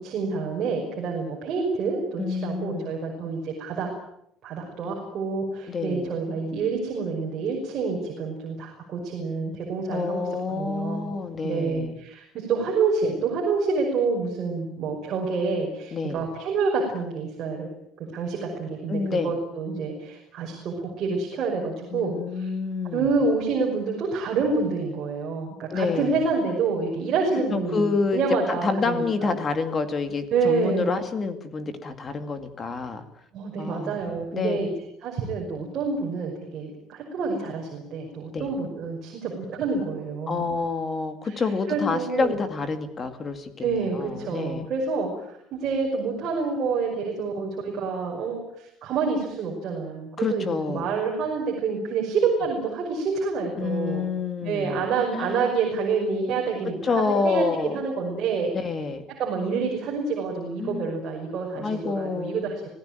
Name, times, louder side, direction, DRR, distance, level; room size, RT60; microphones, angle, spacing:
voice 1, 0.0-3.9 4.4-11.1 11.4-17.7 18.1-22.5 22.9-29.3 30.3-30.9 33.3-34.7 35.0-40.4 41.2-41.4 41.7-42.4 43.6-54.1 54.4-58.5 59.2-62.7, right 4 dB, 40° right, -1 dB, 5.8 m, -28 dB
voice 2, 2.2-2.9 5.7-6.1 9.9-11.9 15.9-16.3 18.9-19.3 21.9-23.1 25.7-26.2 27.5-28.2 28.6-33.0 33.6-34.0 34.3-34.6 38.3-38.5 40.3-44.7 50.2-50.9 53.6-54.8 55.1-55.4 56.8-57.8 58.6-59.0 60.6-60.9 61.6-62.5, left 4 dB, 25° left, 9 dB, 2.1 m, -28 dB
26.0 x 17.0 x 9.0 m, 0.75 s
cardioid pair, 180°, 0 cm